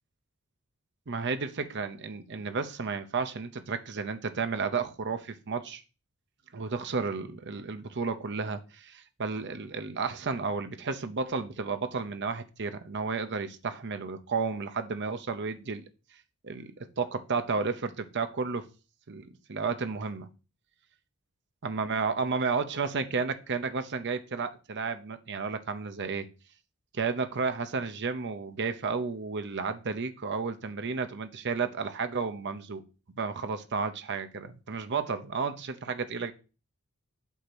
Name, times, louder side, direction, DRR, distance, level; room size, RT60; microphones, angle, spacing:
voice 1, 1.1-5.8 6.5-15.8 16.4-18.7 19.1-20.3 21.6-26.3 26.9-32.8 33.2-36.3, right 4 dB, 55° right, 0.8 m, -32 dB
8.2 x 2.8 x 6.0 m
head